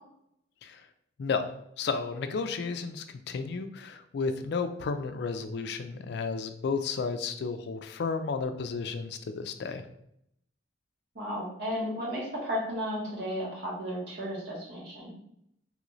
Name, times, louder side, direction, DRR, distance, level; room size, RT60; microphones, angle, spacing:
voice 1, 1.8-9.8, left 4 dB, 60° left, 9 dB, 0.3 m, -32 dB
voice 2, 11.1-15.1, equal, 60° right, -4 dB, 1.2 m, -34 dB
3.1 x 2.5 x 3.0 m, 0.74 s
head